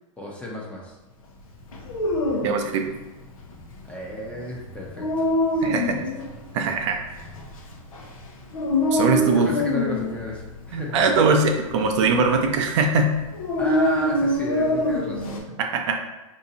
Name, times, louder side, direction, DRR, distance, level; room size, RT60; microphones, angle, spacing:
voice 1, 0.2-1.0 3.9-5.3 5.5-6.0 9.3-10.9 13.6-15.4, left 1 dB, 5° left, -3 dB, 0.7 m, -33 dB
Dog, 1.7-15.4, left 1 dB, 85° left, 0.7 m, -26 dB
voice 2, 2.4-2.9 5.6-6.0 6.5-7.2 8.9-9.5 10.7-13.1 15.6-16.0, right 4 dB, 60° right, 3 dB, 0.5 m, -21 dB
3.8 x 2.7 x 2.7 m, 1.1 s
hypercardioid pair, 135°, 18 cm